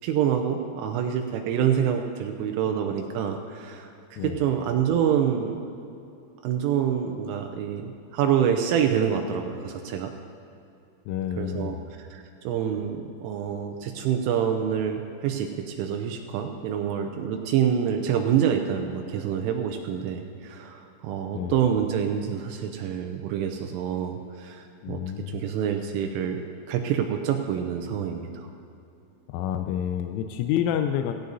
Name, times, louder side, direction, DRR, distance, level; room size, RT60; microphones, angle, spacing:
voice 1, 0.0-5.6 6.4-10.1 11.4-25.0 25.3-28.5, right 8 dB, 80° right, 4 dB, 3.1 m, -27 dB
voice 2, 11.1-11.8 21.3-21.6 24.8-25.4 29.3-31.1, left 10 dB, 85° left, 6 dB, 2.9 m, -28 dB
17.5 x 17.0 x 2.7 m, 2.7 s
omnidirectional pair, 5.9 m